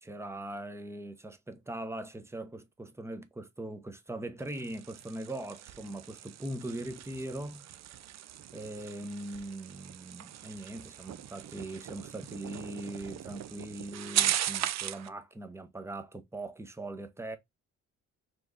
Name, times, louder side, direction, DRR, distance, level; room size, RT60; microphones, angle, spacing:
voice 1, 0.0-7.7 8.5-17.4, right 1 dB, 10° right, 0.9 m, -41 dB
sound 1, 4.4-15.1, right 12 dB, 60° right, 0.5 m, -38 dB
4.5 x 3.5 x 2.5 m
cardioid pair, 90°, 30 cm